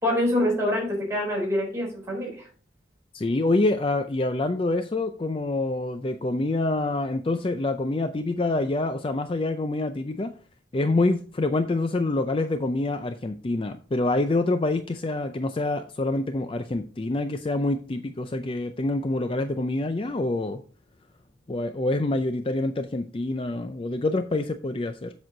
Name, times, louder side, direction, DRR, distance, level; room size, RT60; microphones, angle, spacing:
voice 1, 0.0-2.3, left 1 dB, 15° right, -3 dB, 3.8 m, -25 dB
voice 2, 3.1-10.3 10.7-20.6 21.5-25.1, left 2 dB, 30° left, 9 dB, 0.4 m, -26 dB
7.6 x 6.2 x 3.9 m, 0.40 s
head